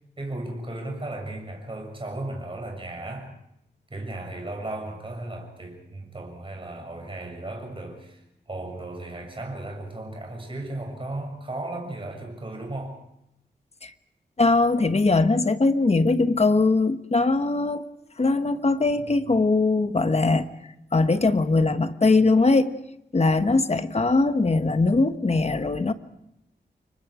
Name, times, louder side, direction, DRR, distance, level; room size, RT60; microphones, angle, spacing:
voice 1, 0.2-3.3 3.9-13.0, right 2 dB, 30° right, 2 dB, 7.0 m, -35 dB
voice 2, 14.4-17.9 18.2-20.5 20.9-22.7 23.1-25.9, left 3 dB, 35° left, 9 dB, 1.3 m, -21 dB
30.0 x 24.0 x 5.0 m, 0.83 s
wide cardioid pair, 105°, 18 cm